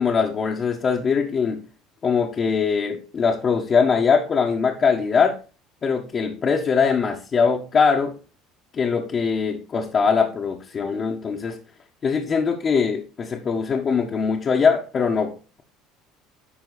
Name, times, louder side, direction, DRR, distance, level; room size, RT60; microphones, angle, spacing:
voice 1, 0.0-1.6 2.0-5.4 5.8-8.1 8.7-11.6 12.0-15.3, left 5 dB, 40° left, -1 dB, 1.4 m, -21 dB
11.0 x 4.1 x 4.2 m, 0.35 s
supercardioid pair, 95°, 0 cm